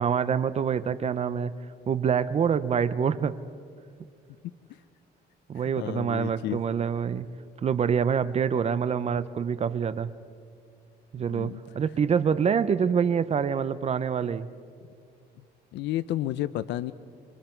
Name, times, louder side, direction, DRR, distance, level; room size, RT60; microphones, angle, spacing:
voice 1, 0.0-1.5 1.9-3.3 5.5-7.3 7.6-10.1 11.1-14.5, right 7 dB, 35° right, 14 dB, 0.7 m, -26 dB
voice 2, 5.6-6.6 11.3-11.6 15.7-16.9, left 13 dB, 85° left, 13 dB, 0.6 m, -31 dB
28.5 x 24.0 x 4.5 m, 2.2 s
cardioid pair, 120°, 18 cm